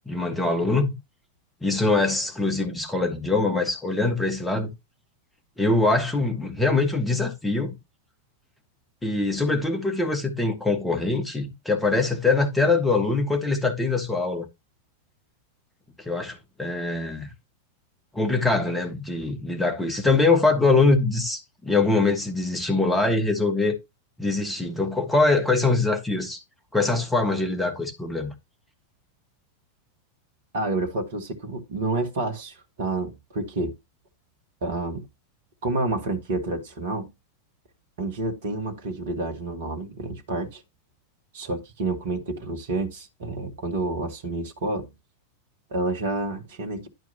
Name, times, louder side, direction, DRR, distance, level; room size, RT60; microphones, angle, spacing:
voice 1, 0.0-0.9 1.6-4.7 5.6-7.8 9.0-14.4 16.0-17.3 18.1-23.7 24.2-26.4 26.7-28.3, left 3 dB, 10° left, 1.6 m, -23 dB
voice 2, 30.5-33.7 34.6-35.1 35.6-37.1 38.0-40.6 41.3-44.9 45.7-46.9, right 2 dB, 55° right, 1.7 m, -29 dB
11.5 x 4.5 x 3.0 m
figure-of-eight pair, 90°, 0 cm